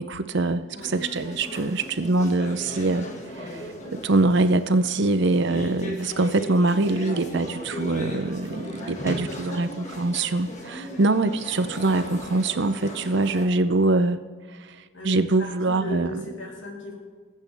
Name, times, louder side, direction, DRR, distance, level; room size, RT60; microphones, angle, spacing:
voice 1, 0.0-3.6 3.9-14.2 14.6-14.8 15.0-16.2, right 2 dB, 60° right, 11 dB, 0.6 m, -23 dB
sound 1, 0.8-13.5, equal, 35° left, 1.8 m, -37 dB
voice 2, 8.8-9.6 10.8-11.0 14.9-17.0, left 1 dB, 60° left, -2 dB, 3.4 m, -38 dB
21.0 x 8.4 x 3.4 m, 1.5 s
head